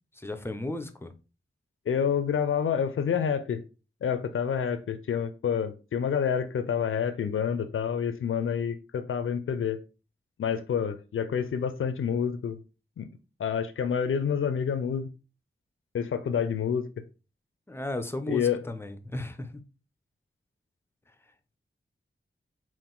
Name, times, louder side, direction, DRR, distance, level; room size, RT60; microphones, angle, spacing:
voice 1, 0.2-1.1 17.7-19.5, left 2 dB, 10° left, 0.5 m, -34 dB
voice 2, 1.9-3.6 4.0-9.8 10.4-12.6 13.0-13.1 13.4-15.1 15.9-16.8 18.3-18.6, left 7 dB, 80° left, 0.4 m, -28 dB
3.7 x 2.5 x 3.7 m
wide cardioid pair, 90°, 21 cm